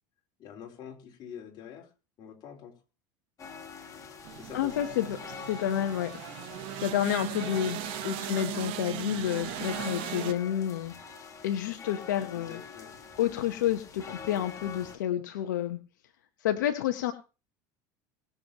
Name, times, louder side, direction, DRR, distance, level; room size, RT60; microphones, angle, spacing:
voice 1, 0.4-1.9 2.2-2.8 4.4-5.1 8.0-8.2 12.3-12.9, left 8 dB, 50° left, 0 dB, 4.3 m, -46 dB
sound 1, 3.4-15.0, left 6 dB, 35° left, 3.1 m, -45 dB
sound 2, 4.2-10.3, right 16 dB, 65° right, 1.2 m, -38 dB
voice 2, 4.5-6.1 6.8-11.0 11.4-12.6 13.2-15.8 16.4-17.1, left 11 dB, 90° left, 7 dB, 1.1 m, -29 dB
21.0 x 7.1 x 3.0 m, 0.32 s
supercardioid pair, 95°, 10 cm